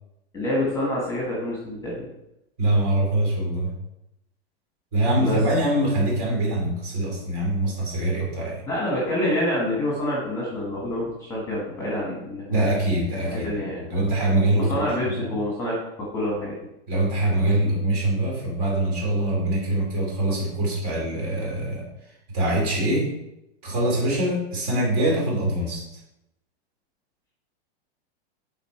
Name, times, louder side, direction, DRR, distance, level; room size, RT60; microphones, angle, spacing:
voice 1, 0.3-2.1 5.2-5.4 8.7-12.7 13.2-13.8 14.5-16.5, left 1 dB, 10° left, -5 dB, 1.4 m, -27 dB
voice 2, 2.6-3.8 4.9-8.6 12.5-15.3 16.9-21.9 22.3-23.1 23.6-25.8, right 1 dB, 40° right, -3 dB, 2.9 m, -24 dB
8.4 x 4.0 x 4.4 m, 0.87 s
supercardioid pair, 165°, 31 cm